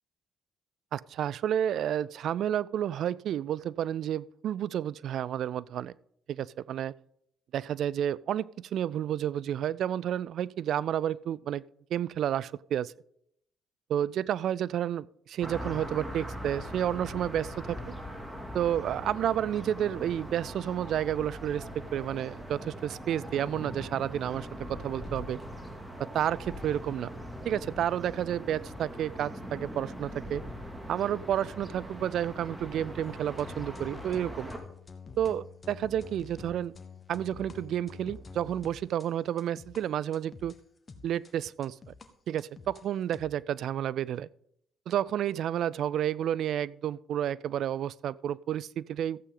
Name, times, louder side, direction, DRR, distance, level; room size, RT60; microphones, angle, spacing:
voice 1, 0.9-5.9 6.3-6.9 7.5-11.6 11.9-12.9 13.9-17.9 18.5-25.4 26.0-27.1 27.5-30.4 30.9-34.5 35.2-36.8 37.1-40.6 41.0-41.9 42.3-44.3 44.9-49.2, right 10 dB, 70° right, 0.3 m, -31 dB
sound 1, 15.4-34.6, equal, 10° right, 2.4 m, -41 dB
sound 2, 33.0-39.8 40.1-42.1 42.4-43.3, left 4 dB, 35° left, 1.4 m, -48 dB
14.5 x 8.2 x 3.8 m
supercardioid pair, 70°, 0 cm